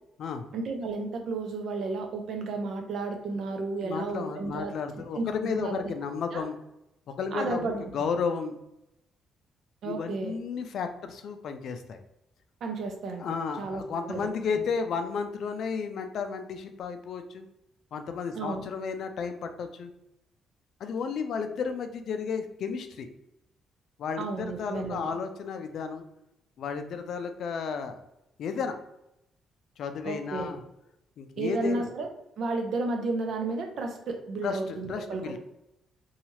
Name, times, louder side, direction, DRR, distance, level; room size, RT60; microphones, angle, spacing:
voice 1, 0.5-5.9 6.3-6.4 7.3-8.1 9.8-10.4 12.6-13.3 13.6-14.6 18.3-18.7 24.2-25.2 30.0-30.5 31.4-32.1 32.4-35.4, right 3 dB, 65° right, 3 dB, 0.6 m, -33 dB
voice 2, 3.8-6.6 7.1-7.7 7.9-8.6 9.8-12.0 13.2-17.5 17.9-19.9 20.8-23.1 24.0-26.0 26.6-28.0 28.4-28.7 29.8-30.6 31.2-31.9 34.4-35.4, left 5 dB, 70° left, 7 dB, 0.4 m, -33 dB
2.8 x 2.3 x 3.0 m, 0.85 s
cardioid pair, 90°, 0 cm